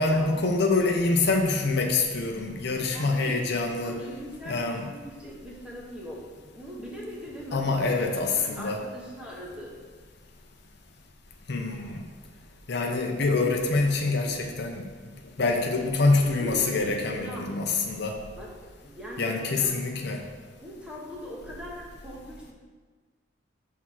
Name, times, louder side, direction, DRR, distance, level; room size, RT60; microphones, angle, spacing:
voice 1, 0.0-4.0 4.5-4.9 7.5-8.8 11.5-12.0 12.7-14.8 15.4-18.2 19.2-20.2, left 3 dB, 65° left, 2 dB, 0.7 m, -25 dB
voice 2, 2.9-3.4 3.7-7.6 8.1-9.7 16.4-17.5 18.4-18.5 18.8-19.8 20.5-22.5, equal, 5° right, -4 dB, 1.2 m, -40 dB
5.9 x 3.7 x 6.0 m, 1.4 s
head